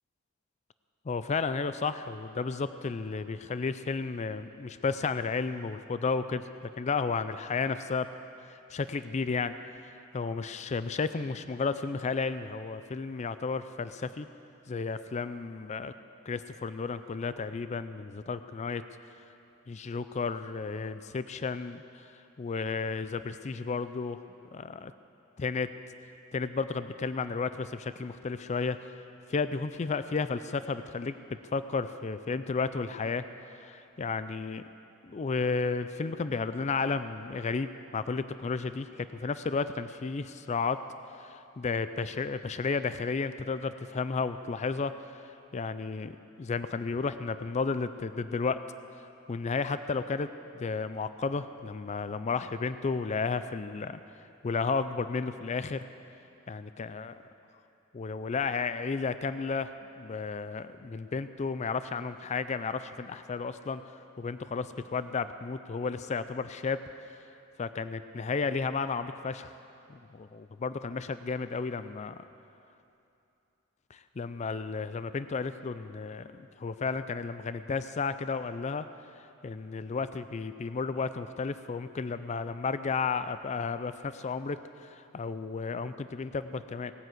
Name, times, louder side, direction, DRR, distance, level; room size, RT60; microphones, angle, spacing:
voice 1, 1.1-8.1 8.5-9.6 10.1-14.3 14.7-15.9 16.3-18.8 19.7-22.0 22.4-24.2 24.5-24.9 25.4-25.7 26.3-29.0 29.3-31.2 31.5-33.2 33.5-34.6 35.0-40.8 41.1-44.9 45.2-48.6 49.3-54.0 54.4-55.8 56.5-57.1 57.9-63.8 64.2-66.8 67.1-67.2 67.6-69.6 69.9-72.2 73.9-78.9 79.4-86.9, left 4 dB, 35° left, 12 dB, 0.4 m, -33 dB
18.0 x 9.6 x 7.8 m, 2.7 s
head